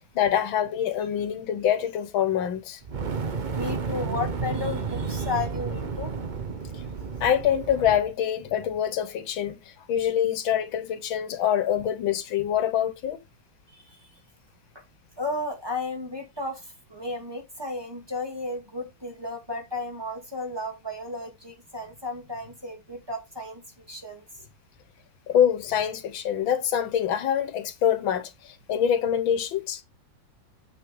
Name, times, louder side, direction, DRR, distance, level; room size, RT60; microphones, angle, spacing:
voice 1, 0.2-2.8 7.2-9.6 9.9-13.2 25.3-29.8, left 9 dB, 90° left, 1.9 m, -25 dB
Fire, 2.8-8.1, right 5 dB, 55° right, 0.5 m, -31 dB
voice 2, 3.5-6.1 13.7-14.2 14.7-14.8 15.2-24.2, left 2 dB, 10° right, 2.2 m, -34 dB
7.7 x 6.1 x 3.7 m
omnidirectional pair, 2.1 m